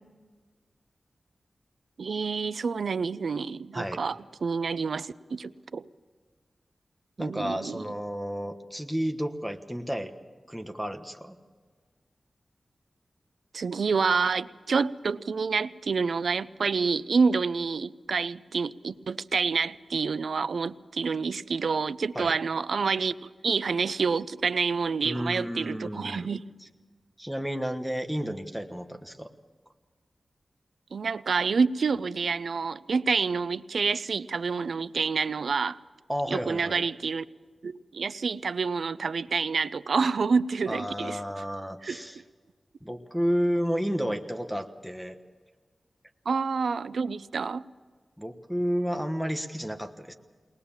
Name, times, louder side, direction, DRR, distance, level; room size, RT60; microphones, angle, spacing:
voice 1, 2.0-5.8 7.2-7.8 13.5-26.4 30.9-35.8 36.3-37.2 37.6-41.2 41.8-42.0 46.3-47.6, right 5 dB, 80° right, 16 dB, 0.5 m, -28 dB
voice 2, 3.7-4.1 7.2-10.2 10.5-11.4 22.1-22.4 25.0-26.3 26.6-26.7 27.2-29.3 36.1-36.9 40.7-42.2 42.8-45.2 48.2-50.1, equal, ahead, 5 dB, 1.3 m, -31 dB
22.5 x 19.5 x 7.3 m, 1.5 s
wide cardioid pair, 105°, 0 cm